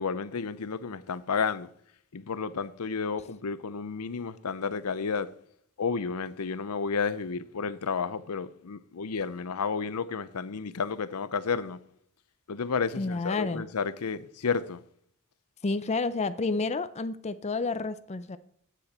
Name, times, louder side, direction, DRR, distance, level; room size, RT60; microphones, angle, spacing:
voice 1, 0.0-1.7 2.1-5.3 5.8-11.8 12.5-14.8, left 5 dB, 85° left, 0.7 m, -31 dB
voice 2, 13.0-13.7 15.6-18.4, left 3 dB, 30° left, 0.5 m, -30 dB
9.9 x 9.1 x 4.2 m
head